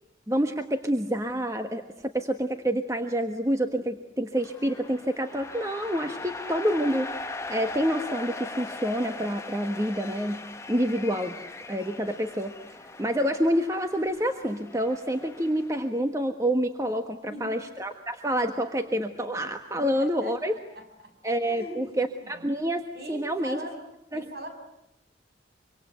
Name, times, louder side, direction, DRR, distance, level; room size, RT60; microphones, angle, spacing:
voice 1, 0.3-7.1 7.5-11.4 11.7-12.5 13.0-20.5 21.2-22.8 23.1-23.6 24.1-24.2, equal, 15° right, 6 dB, 1.3 m, -28 dB
sound 1, 4.4-15.9, left 2 dB, 15° left, 1.3 m, -40 dB
voice 2, 17.2-17.6 19.8-21.2 21.4-22.4 22.9-23.8 24.1-24.5, right 1 dB, 55° right, 5 dB, 7.4 m, -41 dB
25.5 x 25.0 x 9.2 m, 0.82 s
head